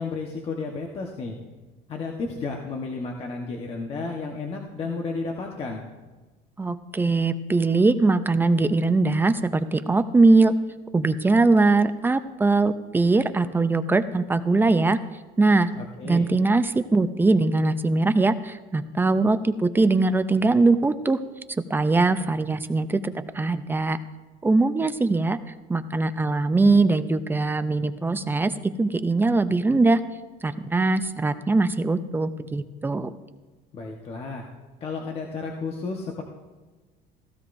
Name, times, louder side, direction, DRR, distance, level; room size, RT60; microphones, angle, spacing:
voice 1, 0.0-1.4 1.9-5.8 15.7-16.3 33.7-34.5 34.8-36.2, left 4 dB, 35° left, 1 dB, 1.2 m, -32 dB
voice 2, 6.6-10.5 10.9-15.0 15.4-15.7 16.0-21.2 21.7-24.0 24.4-25.4 25.7-28.5 28.8-30.0 30.4-33.1, right 3 dB, 10° right, 11 dB, 0.4 m, -21 dB
16.0 x 14.5 x 2.6 m, 1.2 s
cardioid pair, 145°, 18 cm